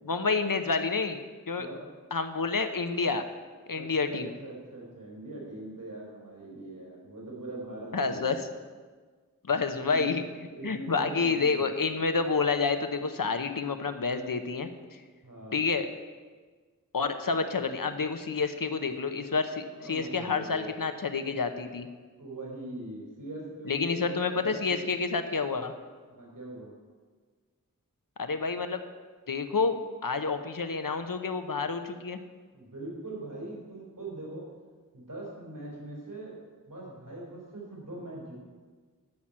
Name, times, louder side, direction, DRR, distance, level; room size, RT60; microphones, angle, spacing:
voice 1, 0.1-1.2 1.5-1.7 2.1-3.3 3.7-4.3 7.9-8.5 9.5-10.2 10.6-15.0 15.5-15.9 16.9-21.9 23.7-25.7 28.2-28.8 29.3-32.2, left 4 dB, 80° left, 8 dB, 1.0 m, -29 dB
voice 2, 3.7-8.3 9.9-10.1 10.5-11.8 15.2-15.7 19.7-20.7 22.2-24.8 26.1-26.7 32.5-34.4 34.9-36.4 36.7-38.3, right 2 dB, 70° right, -3 dB, 4.5 m, -41 dB
13.0 x 5.9 x 8.8 m, 1.4 s
wide cardioid pair, 50°, 33 cm